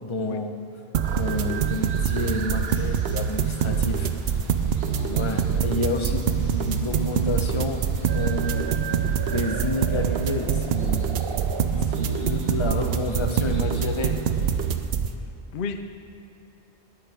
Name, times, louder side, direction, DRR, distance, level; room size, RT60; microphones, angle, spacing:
voice 1, 0.0-0.6 1.2-4.1 5.1-8.7 9.2-11.1 12.0-14.2, left 2 dB, 30° left, 4 dB, 1.0 m, -29 dB
sound 1, 0.9-15.1, right 7 dB, 75° right, 0.9 m, -25 dB
Water, 1.0-14.8, equal, 15° right, 2.1 m, -44 dB
voice 2, 4.8-5.2 8.3-8.5 11.7-12.0 15.5-15.9, left 5 dB, 60° left, 7 dB, 0.8 m, -35 dB
19.5 x 9.4 x 3.6 m, 3.0 s
omnidirectional pair, 1.1 m